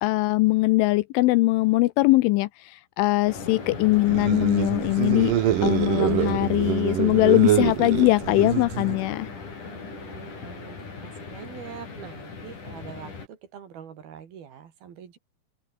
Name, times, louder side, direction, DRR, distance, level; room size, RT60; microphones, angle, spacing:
voice 1, 0.0-5.3 5.6-9.3, left 20 dB, 80° left, 2.9 m, -21 dB
sound 1, 3.2-13.3, left 4 dB, 40° left, 6.8 m, -39 dB
sound 2, 4.0-9.1, right 12 dB, 70° right, 2.1 m, -25 dB
voice 2, 9.7-15.2, right 8 dB, 55° right, 3.8 m, -44 dB
open air
omnidirectional pair, 5.9 m